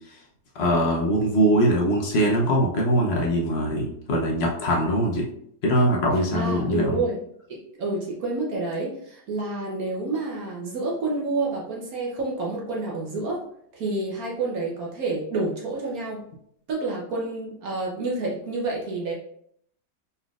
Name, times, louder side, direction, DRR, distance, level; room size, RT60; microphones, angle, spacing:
voice 1, 0.5-5.3 5.6-7.0, equal, 65° left, -1 dB, 0.6 m, -22 dB
voice 2, 6.3-7.2 7.5-13.4 13.7-16.2 16.7-19.1, right 3 dB, 60° right, -3 dB, 1.1 m, -29 dB
4.1 x 4.0 x 2.3 m, 0.69 s
omnidirectional pair, 2.0 m